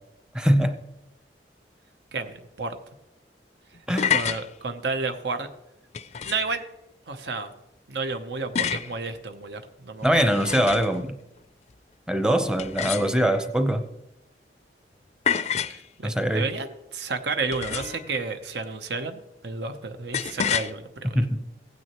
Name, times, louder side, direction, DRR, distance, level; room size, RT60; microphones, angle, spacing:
voice 1, 0.3-0.8 3.9-4.1 10.0-11.2 12.1-13.8 16.0-16.5 21.1-21.4, equal, 5° right, 8 dB, 0.7 m, -22 dB
voice 2, 2.1-2.8 4.1-5.5 6.2-6.6 7.1-7.5 7.9-10.6 15.7-21.1, right 4 dB, 80° right, 7 dB, 0.8 m, -31 dB
sound 1, 3.7-4.4 5.9-6.6 8.6-8.9 10.0-11.0 12.6-13.4 15.3-15.8 17.5-18.1 20.1-20.7, left 8 dB, 40° left, 0.4 m, -28 dB
16.0 x 9.5 x 3.0 m, 0.90 s
head